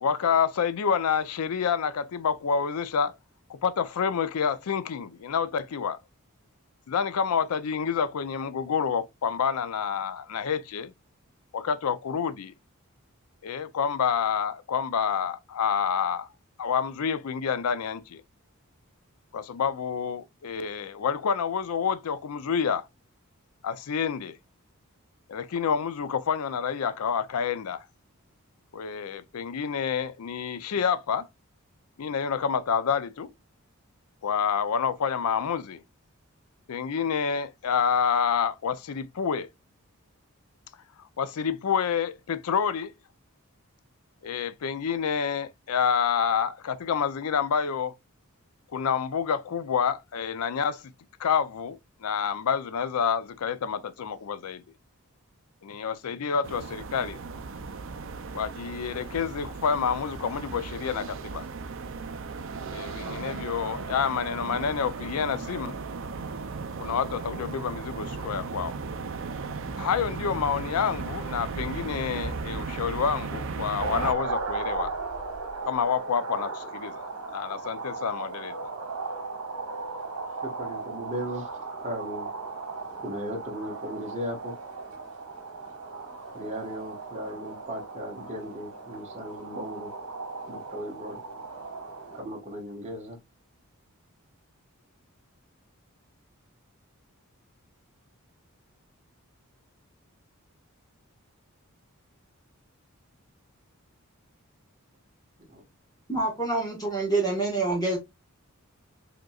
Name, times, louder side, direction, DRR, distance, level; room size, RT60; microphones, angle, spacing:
voice 1, 0.0-3.1 3.5-6.0 6.9-10.9 11.5-12.5 13.4-16.3 16.6-18.2 19.3-22.9 23.6-24.4 25.3-27.8 28.7-31.3 32.0-33.3 34.2-35.8 36.7-39.5 41.2-42.9 44.2-47.9 48.7-50.8 51.2-54.6 55.6-57.2 58.3-61.4 62.7-65.8 66.8-68.8 69.8-74.9 75.6-78.7, left 7 dB, 75° left, 0.4 m, -28 dB
sound 1, 56.4-74.1, right 4 dB, 60° right, 0.5 m, -36 dB
sound 2, 73.8-92.2, right 4 dB, 80° right, 1.2 m, -36 dB
voice 2, 80.4-81.5 81.8-82.3 83.0-84.5 86.3-89.9 90.5-91.2 92.1-93.2 105.5-105.6, equal, 30° right, 1.3 m, -36 dB
voice 3, 106.1-108.0, right 2 dB, 15° left, 1.2 m, -26 dB
5.0 x 3.0 x 2.3 m
head